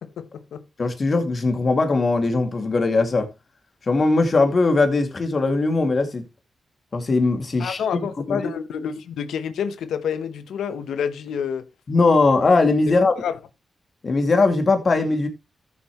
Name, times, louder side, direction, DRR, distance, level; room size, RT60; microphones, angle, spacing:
voice 1, 0.0-0.6 7.6-11.7 12.9-13.4, left 7 dB, 90° left, 0.8 m, -29 dB
voice 2, 0.8-3.3 3.9-6.2 6.9-7.8 8.3-8.5 11.9-13.1 14.0-15.3, left 3 dB, 50° left, 2.3 m, -20 dB
13.5 x 7.2 x 3.0 m
cardioid pair, 60°, 0 cm